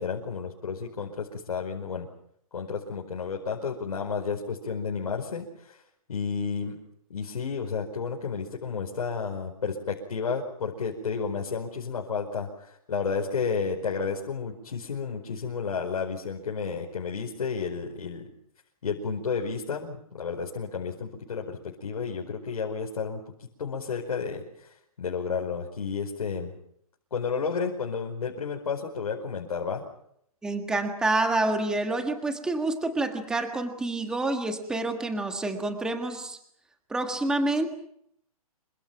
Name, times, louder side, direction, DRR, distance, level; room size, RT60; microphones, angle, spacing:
voice 1, 0.0-2.1 2.5-5.8 6.1-6.7 7.1-18.3 18.8-26.5 27.1-29.8, left 5 dB, 80° left, 0 dB, 5.1 m, -32 dB
voice 2, 30.4-36.4 36.9-37.7, right 2 dB, 5° right, 5 dB, 1.6 m, -28 dB
27.5 x 25.0 x 6.0 m, 0.72 s
hypercardioid pair, 165°, 19 cm